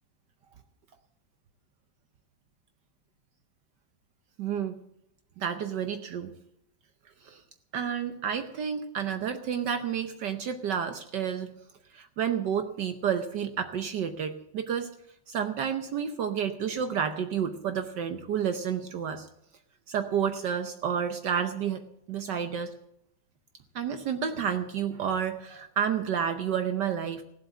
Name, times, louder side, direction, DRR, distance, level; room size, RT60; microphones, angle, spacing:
voice 1, 4.4-4.8 5.4-6.3 7.2-7.4 7.7-11.5 11.9-14.9 15.3-19.3 19.9-22.7 23.7-27.2, right 8 dB, 65° right, 8 dB, 1.4 m, -30 dB
16.0 x 7.8 x 8.1 m, 0.76 s
omnidirectional pair, 2.1 m